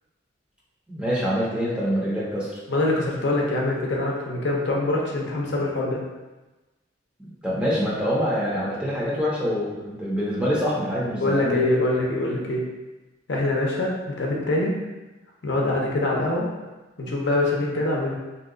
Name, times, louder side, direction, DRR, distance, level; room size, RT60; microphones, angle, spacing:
voice 1, 0.9-2.6 7.2-11.6, equal, 5° right, -7 dB, 0.7 m, -25 dB
voice 2, 2.7-6.0 11.2-12.6 13.3-14.7 15.4-16.5 17.0-18.1, left 2 dB, 60° left, -2 dB, 0.6 m, -24 dB
2.7 x 2.3 x 3.7 m, 1.1 s
head